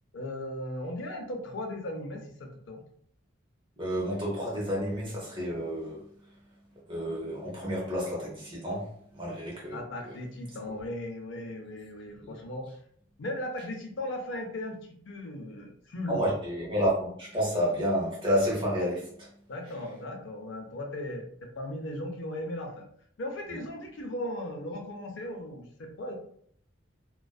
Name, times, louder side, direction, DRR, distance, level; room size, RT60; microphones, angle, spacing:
voice 1, 0.1-2.8 9.7-12.6 13.2-14.7 15.1-16.2 19.5-21.3 21.5-22.8 23.2-26.1, left 1 dB, 75° left, 3 dB, 0.5 m, -37 dB
voice 2, 3.8-6.3 6.9-10.2 12.2-12.3 16.1-19.3 19.6-19.7 23.5-23.6, equal, 25° right, -4 dB, 0.9 m, -30 dB
2.4 x 2.2 x 2.3 m, 0.63 s
head